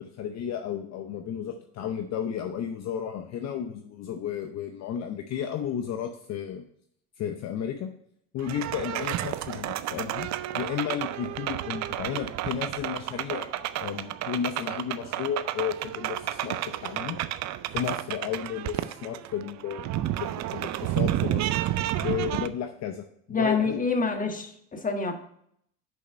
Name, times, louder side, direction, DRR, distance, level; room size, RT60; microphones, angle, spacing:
voice 1, 0.0-6.6 7.2-7.9 8.3-10.3 10.5-13.5 13.8-17.2 17.7-21.5 22.0-23.8, left 8 dB, 50° left, 6 dB, 0.7 m, -33 dB
sound 1, 8.4-22.5, right 13 dB, 55° right, 0.5 m, -31 dB
voice 2, 23.3-25.1, left 4 dB, 25° left, 4 dB, 1.4 m, -27 dB
6.4 x 5.5 x 5.3 m, 0.69 s
supercardioid pair, 95°, 34 cm